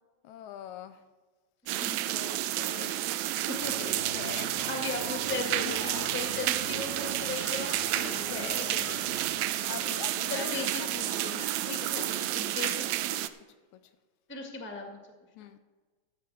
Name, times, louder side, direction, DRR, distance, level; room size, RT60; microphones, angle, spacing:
voice 1, 0.2-1.0 2.1-3.0 3.8-4.5 5.4-6.2 7.6-8.8 9.1-11.0 11.7-12.3 12.6-12.7 13.7-13.8 15.4-15.6, left 10 dB, 80° left, 11 dB, 1.9 m, -44 dB
sound 1, 1.7-13.3, right 14 dB, 80° right, 1.8 m, -31 dB
voice 2, 1.8-2.1 3.3-3.9 4.3-9.1 10.3-12.1 12.3-13.3 14.3-15.0, left 3 dB, 5° left, 3 dB, 0.9 m, -38 dB
sound 2, 2.6-12.4, left 5 dB, 65° left, 1.0 m, -46 dB
Drum, 3.6-10.1, left 2 dB, 35° right, 0.7 m, -52 dB
14.5 x 5.2 x 8.5 m, 1.3 s
omnidirectional pair, 3.6 m